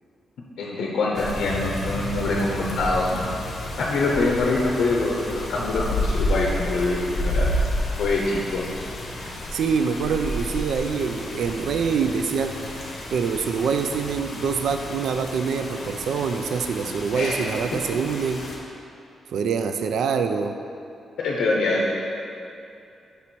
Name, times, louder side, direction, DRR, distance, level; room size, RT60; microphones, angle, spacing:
voice 1, 0.6-3.3 3.8-7.5 8.0-8.7 17.1-17.6 21.2-21.9, left 2 dB, 80° left, -2 dB, 0.6 m, -24 dB
sound 1, 1.1-18.6, left 1 dB, 45° left, 0.7 m, -31 dB
voice 2, 9.2-12.6 13.1-18.5 19.3-20.6, right 6 dB, 70° right, 7 dB, 0.3 m, -25 dB
5.4 x 4.5 x 4.2 m, 2.6 s
wide cardioid pair, 180°, 0 cm